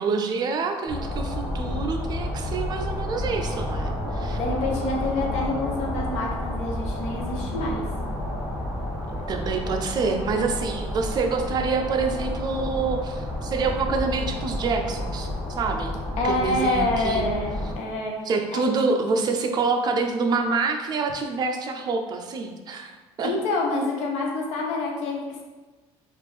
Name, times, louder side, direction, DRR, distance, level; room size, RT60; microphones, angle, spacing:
voice 1, 0.0-4.4 9.1-15.9 16.2-17.3 18.3-23.3, right 4 dB, 35° right, 5 dB, 0.4 m, -27 dB
sound 1, 0.9-17.7, left 1 dB, ahead, 1.1 m, -30 dB
voice 2, 4.3-7.8 16.2-17.5 17.8-18.6 23.2-25.4, left 2 dB, 70° left, -1 dB, 0.7 m, -27 dB
3.4 x 2.5 x 3.1 m, 1.2 s
cardioid pair, 130°, 12 cm